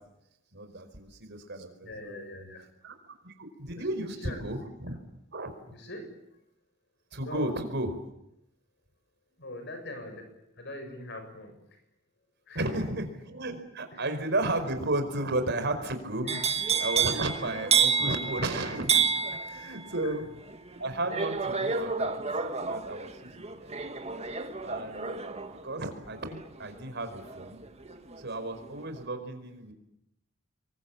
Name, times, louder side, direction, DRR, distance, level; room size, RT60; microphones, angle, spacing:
voice 1, 0.5-2.2 2.8-5.0 5.3-5.7 7.1-8.0 12.5-16.3 16.6-19.0 19.4-20.2 20.8-22.2 22.6-23.8 24.6-27.6 28.2-29.7, right 2 dB, 60° right, 7 dB, 4.9 m, -34 dB
voice 2, 1.8-2.7 3.8-4.5 4.9-5.0 5.7-6.1 7.2-7.5 9.4-11.6 12.5-12.7 13.9-14.1 16.2-16.5 17.1-17.5 20.0-20.2, left 1 dB, 60° left, 6 dB, 7.5 m, -42 dB
sound 1, 16.3-28.2 28.6-29.0, right 6 dB, 30° right, 1.9 m, -30 dB
27.0 x 23.5 x 8.7 m, 0.81 s
head